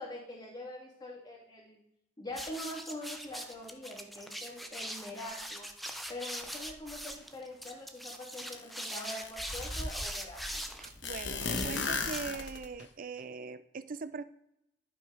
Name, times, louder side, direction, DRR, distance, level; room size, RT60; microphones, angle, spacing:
voice 1, 0.0-1.8 2.2-5.7 6.1-10.6, left 1 dB, 25° left, -2 dB, 2.3 m, -44 dB
sound 1, 2.3-12.8, equal, ahead, 0.6 m, -41 dB
sound 2, 8.5-8.6 9.0-10.1 11.0-12.8, left 4 dB, 80° left, 1.2 m, -35 dB
voice 2, 10.8-14.2, right 4 dB, 50° right, 13 dB, 0.5 m, -41 dB
11.0 x 5.3 x 5.0 m, 0.80 s
head